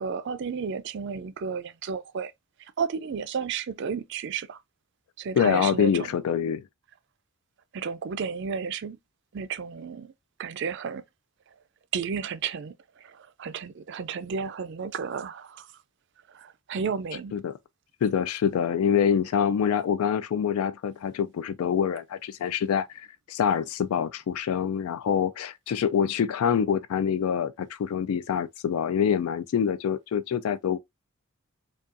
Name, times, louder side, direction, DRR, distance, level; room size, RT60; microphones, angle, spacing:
voice 1, 0.0-2.3 2.8-4.6 5.2-6.1 7.7-9.0 9.3-10.1 10.4-11.0 11.9-12.7 13.0-15.7 16.3-17.4, right 6 dB, 55° right, 0.4 m, -32 dB
voice 2, 5.4-6.6 17.3-17.5 18.0-30.8, left 8 dB, 90° left, 0.3 m, -25 dB
5.1 x 2.3 x 2.5 m
head